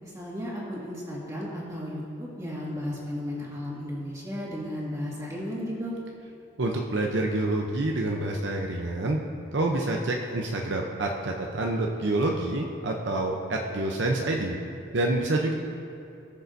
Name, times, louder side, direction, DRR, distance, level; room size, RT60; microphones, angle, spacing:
voice 1, 0.0-5.9, left 1 dB, 15° right, -6 dB, 2.0 m, -34 dB
voice 2, 6.6-9.2 9.5-14.5 14.9-15.5, right 2 dB, 65° right, 1 dB, 0.7 m, -27 dB
19.0 x 6.7 x 2.7 m, 2.6 s
head